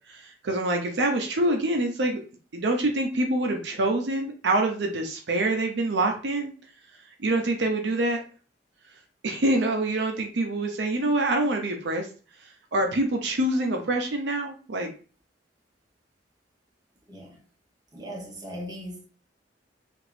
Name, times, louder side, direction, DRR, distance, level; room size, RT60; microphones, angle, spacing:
voice 1, 0.1-2.2 2.5-6.5 7.2-8.2 9.2-12.1 12.4-14.9, right 2 dB, 70° right, 0.5 m, -26 dB
voice 2, 17.1-17.4 17.9-19.1, equal, 20° right, 0.8 m, -38 dB
2.9 x 2.5 x 3.1 m
head